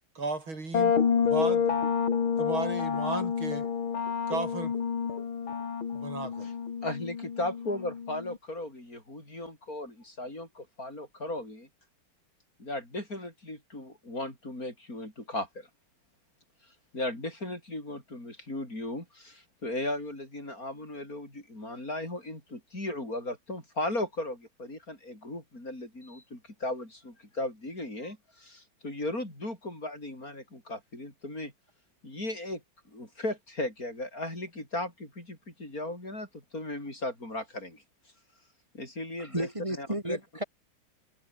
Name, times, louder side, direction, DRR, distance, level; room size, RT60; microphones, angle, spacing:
voice 1, 0.2-0.9 1.2-1.6 2.4-3.7 4.3-4.7 5.9-6.5, right 3 dB, 80° right, 6.4 m, -34 dB
sound 1, 0.7-8.4, left 6 dB, 85° left, 3.1 m, -29 dB
voice 2, 6.8-11.7 12.6-15.7 16.9-31.5 32.0-32.6 32.9-37.8 38.7-39.5 39.8-40.2, left 1 dB, 45° left, 8.1 m, -36 dB
voice 3, 39.2-40.4, right 1 dB, 15° right, 5.5 m, -33 dB
omnidirectional pair, 2.2 m